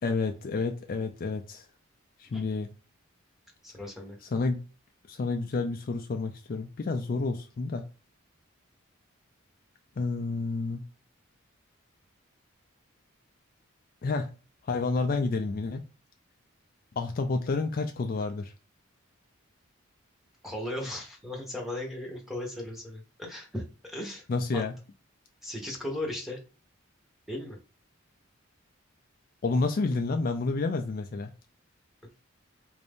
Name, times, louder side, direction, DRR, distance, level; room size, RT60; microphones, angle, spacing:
voice 1, 0.0-1.7 2.2-2.7 4.2-4.6 5.1-7.8 10.0-10.8 14.0-14.3 14.6-15.8 17.0-18.5 24.3-24.8 29.4-31.3, left 3 dB, 40° left, 5 dB, 0.3 m, -29 dB
voice 2, 3.6-4.2 20.4-24.3 24.5-24.6 25.4-26.4 27.3-27.6, left 1 dB, ahead, -1 dB, 0.9 m, -36 dB
3.9 x 2.6 x 3.5 m, 0.34 s
head